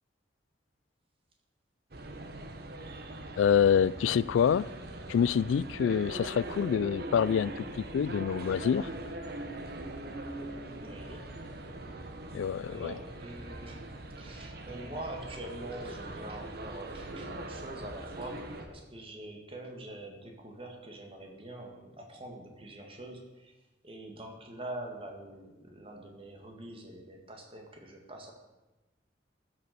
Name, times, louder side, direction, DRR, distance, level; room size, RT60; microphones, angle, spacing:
sound 1, 1.9-18.7, right 1 dB, 55° right, 1.2 m, -42 dB
voice 1, 3.4-4.7 5.1-8.9 12.3-12.9, left 7 dB, 90° left, 0.3 m, -26 dB
voice 2, 10.8-11.3 12.7-23.5 23.8-28.3, right 1 dB, 30° right, 2.0 m, -44 dB
14.0 x 6.6 x 6.9 m
head